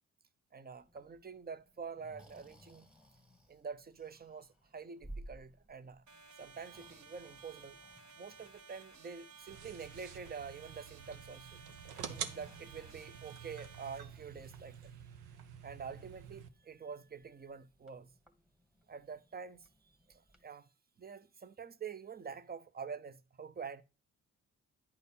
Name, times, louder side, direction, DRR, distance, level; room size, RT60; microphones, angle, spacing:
voice 1, 0.5-2.9 3.5-6.0 6.4-7.8 8.2-14.9 15.6-18.1 18.9-19.7 20.1-20.7 21.0-23.8, right 6 dB, 25° right, 0.7 m, -47 dB
Breathing, 0.7-20.4, right 1 dB, ahead, 1.4 m, -59 dB
sound 1, 6.1-14.0, right 5 dB, 45° right, 1.4 m, -56 dB
sound 2, 9.5-16.5, right 8 dB, 70° right, 0.8 m, -48 dB
9.9 x 4.0 x 5.4 m
hypercardioid pair, 40°, 39 cm